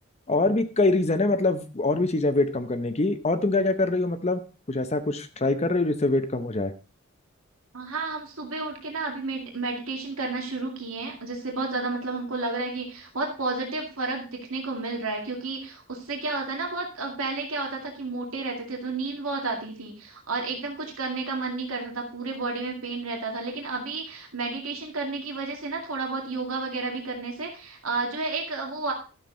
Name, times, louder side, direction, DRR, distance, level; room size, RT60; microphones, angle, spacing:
voice 1, 0.3-4.4 4.7-6.7, left 2 dB, 30° left, 9 dB, 0.7 m, -24 dB
voice 2, 7.7-28.9, right 3 dB, 75° right, 1 dB, 2.2 m, -31 dB
12.5 x 7.4 x 3.8 m, 0.34 s
head